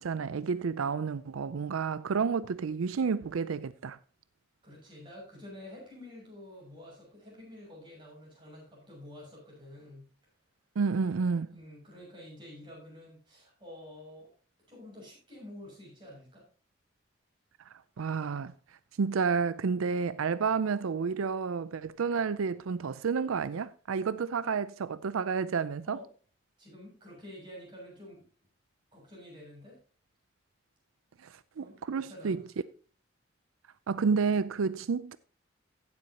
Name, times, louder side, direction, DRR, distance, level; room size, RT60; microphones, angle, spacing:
voice 1, 0.0-4.0 10.8-11.5 17.7-18.5 19.0-26.0 31.2-32.4 33.9-35.2, right 5 dB, 85° right, 0.5 m, -30 dB
voice 2, 4.6-10.1 11.5-14.3 14.7-16.5 24.4-24.6 25.8-26.1 26.6-28.2 28.9-29.8 31.6-32.5, left 1 dB, 25° right, 6.6 m, -49 dB
16.0 x 7.8 x 2.9 m
head